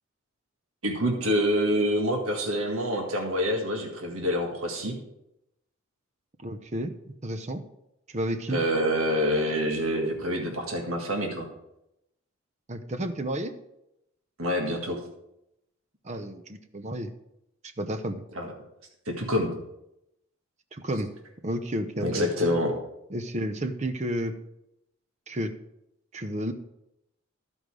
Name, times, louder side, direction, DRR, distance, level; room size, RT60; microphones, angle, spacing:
voice 1, 0.8-5.0 8.5-11.5 14.4-15.0 18.3-18.5 19.0-19.5 22.0-22.7, equal, 80° right, 1 dB, 1.7 m, -26 dB
voice 2, 6.4-6.9 7.2-7.6 8.1-8.6 12.7-13.5 16.0-17.1 17.8-18.2 20.7-21.1 21.4-22.5 23.1-24.4 25.3-25.5 26.1-26.5, right 1 dB, 30° right, 9 dB, 0.7 m, -31 dB
14.0 x 5.3 x 4.8 m, 0.85 s
head